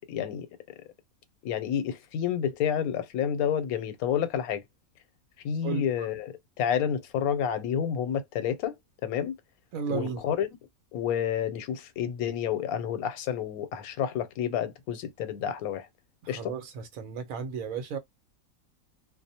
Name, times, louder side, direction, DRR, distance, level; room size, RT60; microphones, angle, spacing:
voice 1, 0.1-0.5 1.4-4.6 5.4-9.4 9.9-10.5 10.9-15.9 16.3-16.5, left 8 dB, 85° left, 1.1 m, -29 dB
voice 2, 9.7-10.2 16.2-18.0, right 6 dB, 75° right, 1.1 m, -34 dB
2.5 x 2.1 x 2.7 m
omnidirectional pair, 1.5 m